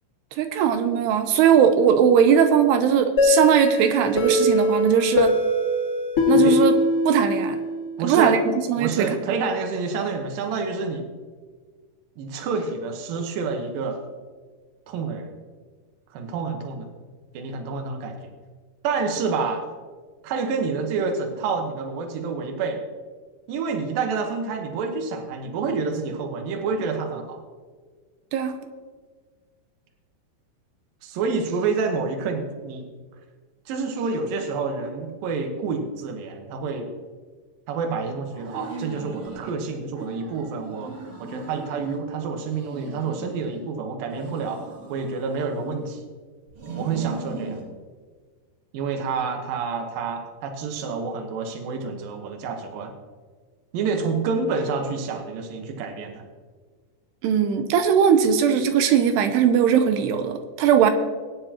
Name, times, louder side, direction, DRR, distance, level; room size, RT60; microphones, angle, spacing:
voice 1, 0.4-5.4 6.3-6.7 7.1-7.6 8.0-9.2 28.3-28.6 57.2-60.9, right 8 dB, 85° right, 7 dB, 2.8 m, -19 dB
sound 1, 3.2-7.9, left 2 dB, 40° left, 2.6 m, -21 dB
voice 2, 8.0-8.4 8.8-11.0 12.2-14.0 14.9-15.3 16.1-16.9 17.3-18.2 18.8-19.6 20.2-22.8 23.5-27.4 31.0-32.8 33.7-36.9 37.7-44.6 44.9-46.0 46.8-47.6 48.7-53.0 53.7-56.3, right 4 dB, 65° right, 4 dB, 2.7 m, -28 dB
sound 2, 38.3-39.6 39.9-42.0 42.4-43.7 44.1-46.0 46.5-47.7, right 3 dB, 50° right, 1.8 m, -39 dB
20.0 x 9.6 x 2.9 m, 1.5 s
omnidirectional pair, 4.9 m